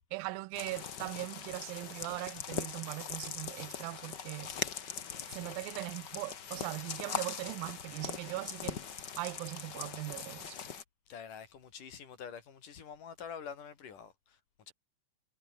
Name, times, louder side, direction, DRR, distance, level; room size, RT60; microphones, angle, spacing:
voice 1, 0.1-4.6 5.3-8.8 9.2-10.6, right 22 dB, 90° right, 2.3 m, -40 dB
sound 1, 0.5-10.8, left 7 dB, 45° left, 1.5 m, -41 dB
voice 2, 11.1-14.4 14.7-14.8, left 7 dB, 65° left, 4.5 m, -46 dB
omnidirectional pair, 4.0 m